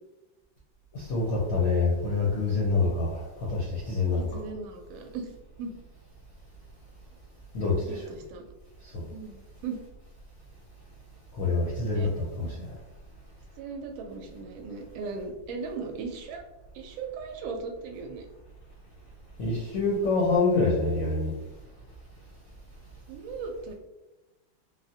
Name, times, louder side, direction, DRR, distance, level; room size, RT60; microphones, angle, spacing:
voice 1, 0.9-4.4 7.5-8.0 8.9-9.0 11.4-12.7 19.4-21.3, left 3 dB, 70° left, -4 dB, 0.8 m, -26 dB
voice 2, 4.1-5.3 5.6-5.7 7.8-8.4 9.1-9.8 11.9-12.1 13.6-16.4 16.7-18.3 23.1-23.7, right 4 dB, 80° right, 3 dB, 1.3 m, -37 dB
3.7 x 2.0 x 2.7 m, 1.0 s
omnidirectional pair, 2.2 m